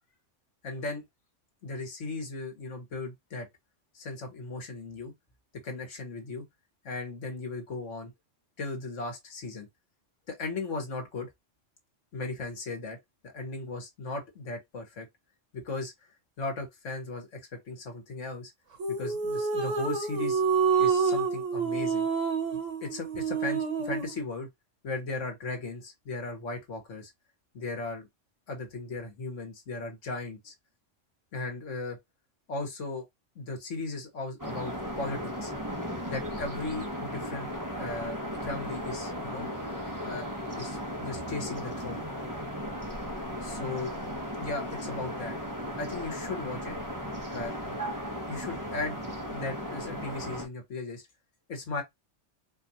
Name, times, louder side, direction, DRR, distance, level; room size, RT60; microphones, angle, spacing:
voice 1, 0.6-1.0 1.6-3.5 3.9-5.1 5.6-6.5 6.8-8.1 8.6-9.7 10.3-11.3 12.1-13.0 13.2-15.1 15.5-15.9 16.4-17.4 17.7-18.5 19.0-20.4 20.8-22.1 22.5-24.5 24.8-27.1 27.5-28.1 28.5-30.5 31.3-32.0 32.5-33.1 33.4-35.5 36.1-39.5 40.0-42.1 43.4-43.9 44.4-45.4 45.8-46.7 47.3-47.8 48.3-49.0 49.3-51.0 51.5-51.8, left 3 dB, 80° left, 1.7 m, -37 dB
sound 1, 18.8-24.2, right 5 dB, 85° right, 1.6 m, -28 dB
sound 2, 34.4-50.5, equal, 20° right, 0.8 m, -36 dB
4.4 x 2.5 x 2.8 m
omnidirectional pair, 1.3 m